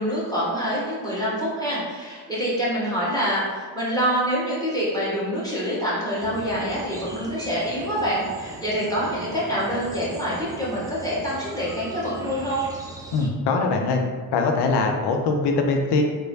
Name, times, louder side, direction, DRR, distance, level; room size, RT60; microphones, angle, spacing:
voice 1, 0.0-12.6, equal, 5° left, -7 dB, 1.3 m, -26 dB
sound 1, 6.2-13.3, right 1 dB, 10° right, 0.3 m, -40 dB
voice 2, 13.1-14.0 14.3-16.0, left 3 dB, 55° left, 3 dB, 0.5 m, -22 dB
3.0 x 2.1 x 2.7 m, 1.5 s
hypercardioid pair, 50°, 50 cm